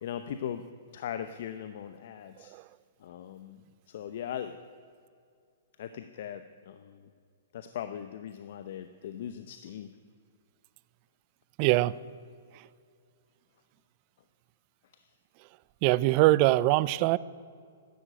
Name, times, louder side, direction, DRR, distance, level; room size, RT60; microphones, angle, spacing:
voice 1, 0.0-0.6 0.9-2.5 3.0-3.6 3.9-4.6 5.8-7.1 7.5-9.9, left 9 dB, 60° left, 10 dB, 0.8 m, -39 dB
voice 2, 11.6-12.0 15.8-17.2, right 18 dB, 40° right, 20 dB, 0.4 m, -22 dB
12.5 x 10.5 x 8.9 m, 2.2 s
hypercardioid pair, 140°, 0 cm